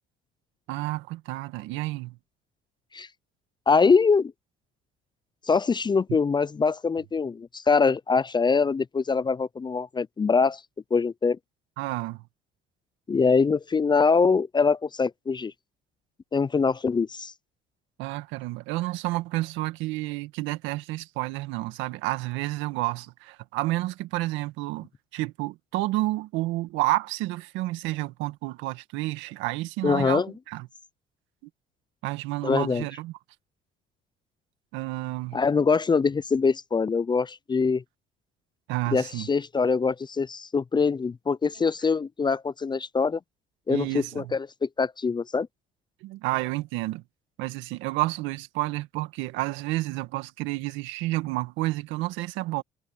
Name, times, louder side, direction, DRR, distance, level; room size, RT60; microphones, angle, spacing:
voice 1, 0.7-2.2 11.8-12.2 18.0-30.7 32.0-33.1 34.7-35.4 38.7-39.3 43.7-44.3 46.0-47.0 47.4-52.6, right 19 dB, 80° right, 1.9 m, -30 dB
voice 2, 3.7-4.3 5.5-10.6 10.9-11.4 13.1-15.5 16.3-17.3 29.8-30.3 32.4-32.8 35.3-37.8 38.9-43.2 43.7-45.5, left 5 dB, 25° left, 0.5 m, -23 dB
supercardioid pair, 80°, 19 cm